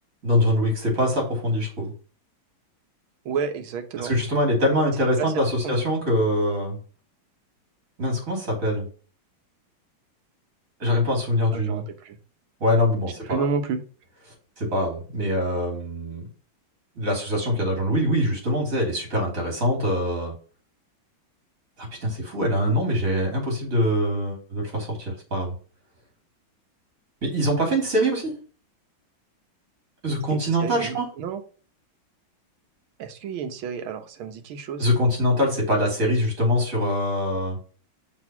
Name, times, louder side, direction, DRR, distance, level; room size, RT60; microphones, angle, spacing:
voice 1, 0.2-1.9 4.0-6.8 8.0-8.9 10.8-11.8 12.6-13.5 14.6-16.2 16.9-20.3 21.8-25.5 27.2-28.3 30.0-31.1 34.8-37.6, equal, 40° right, 0 dB, 3.2 m, -23 dB
voice 2, 3.3-4.1 5.2-5.3 5.6-5.8 11.5-12.2 13.3-13.8 30.3-31.4 33.0-34.9, right 6 dB, 85° right, 8 dB, 1.8 m, -30 dB
6.2 x 4.0 x 5.7 m, 0.39 s
omnidirectional pair, 2.2 m